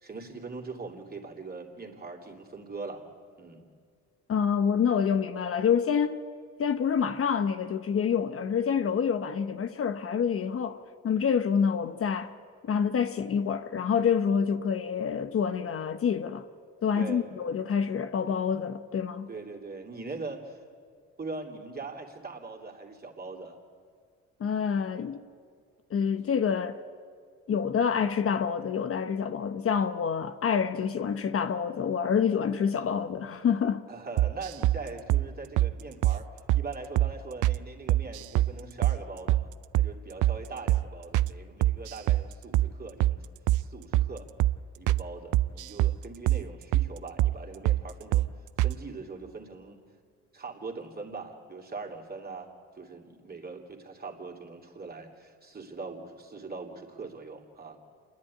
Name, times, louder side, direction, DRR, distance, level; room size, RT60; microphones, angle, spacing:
voice 1, 0.0-3.0 3.4-3.6 17.0-17.3 19.3-20.6 21.2-23.6 33.9-36.3 36.5-43.3 43.6-44.3 44.8-48.3 48.6-49.8 50.3-52.5 52.8-57.8, right 3 dB, 30° right, 2.9 m, -41 dB
voice 2, 4.3-6.2 6.6-12.3 12.6-16.5 16.8-19.3 24.4-25.2 25.9-26.8 27.5-33.8, left 7 dB, 50° left, 0.9 m, -27 dB
sound 1, 34.2-34.8 35.1-35.3 35.6-35.7 36.0-36.2 36.5-36.6 37.0-37.1 37.4-37.6 37.9-38.5 38.8-39.0 39.3-39.4 39.7-39.9 40.2-40.4 40.7-40.8 41.1-41.3 41.6-42.2 42.5-42.7 43.0-43.2 43.5-43.6 43.9-44.1 44.4-44.6 44.9-45.0 45.3-46.0 46.3-46.4 46.7-46.9 47.2-47.3 47.6-47.8 48.1-48.3 48.6-48.7, right 15 dB, 85° right, 0.5 m, -24 dB
27.0 x 10.5 x 9.7 m
cardioid pair, 90°, 30 cm